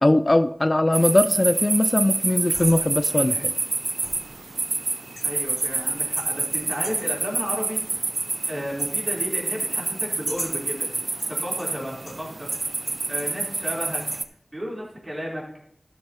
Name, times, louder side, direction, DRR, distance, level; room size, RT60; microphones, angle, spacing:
voice 1, 0.0-3.5, left 1 dB, 35° left, 11 dB, 0.4 m, -20 dB
sound 1, 0.9-14.2, right 3 dB, 75° right, 0.3 m, -27 dB
sound 2, 1.1-1.6 2.4-3.2 4.0-4.7 5.2-5.9 6.2-7.2 7.8-8.4 8.7-9.0 10.0-10.7 11.2-13.4 13.6-14.3, left 2 dB, 90° left, 2.2 m, -45 dB
voice 2, 5.2-8.0 8.5-10.9 11.3-12.5 13.1-14.0 14.5-15.4, equal, 40° right, -4 dB, 3.8 m, -33 dB
14.0 x 6.6 x 3.0 m, 0.72 s
wide cardioid pair, 45°, 0 cm